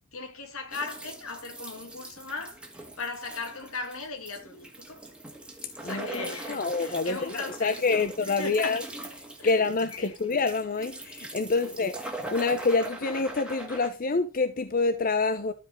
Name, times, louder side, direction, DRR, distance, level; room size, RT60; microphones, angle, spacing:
voice 1, 0.1-2.6 3.0-5.0 5.8-8.9 9.4-9.6 9.9-10.2 11.6-11.7, left 3 dB, 75° left, 2.4 m, -38 dB
sound 1, 0.7-13.9, right 2 dB, 5° right, 1.8 m, -42 dB
voice 2, 5.8-8.8 9.4-12.0 12.3-15.5, left 3 dB, 40° left, 0.7 m, -27 dB
13.0 x 5.0 x 3.7 m
head